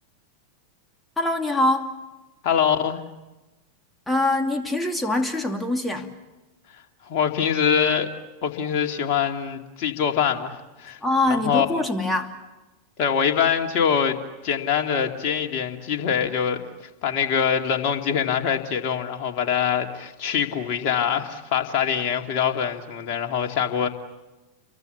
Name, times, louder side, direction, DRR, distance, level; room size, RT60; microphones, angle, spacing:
voice 1, 1.2-1.9 4.1-6.1 11.0-12.3, left 2 dB, 5° left, 5 dB, 2.7 m, -23 dB
voice 2, 2.4-3.0 7.1-8.1 8.4-11.0 11.3-11.8 13.0-14.2 14.4-16.7 17.0-23.9, left 7 dB, 45° left, 4 dB, 2.5 m, -24 dB
29.5 x 23.5 x 7.1 m, 1.1 s
figure-of-eight pair, 90°, 0 cm